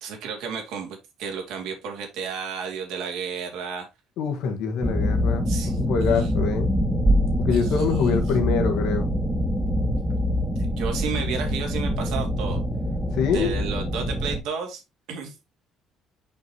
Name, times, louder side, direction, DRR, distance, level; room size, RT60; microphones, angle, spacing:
voice 1, 0.0-3.9 5.5-6.3 7.5-8.2 10.6-12.6 13.2-14.8 15.1-15.3, right 6 dB, 80° right, 2.6 m, -33 dB
voice 2, 4.2-6.7 7.4-9.1 13.1-13.5, left 6 dB, 80° left, 1.7 m, -25 dB
sound 1, 4.8-14.4, equal, 5° right, 2.3 m, -24 dB
6.6 x 5.5 x 3.0 m
cardioid pair, 90°, 0 cm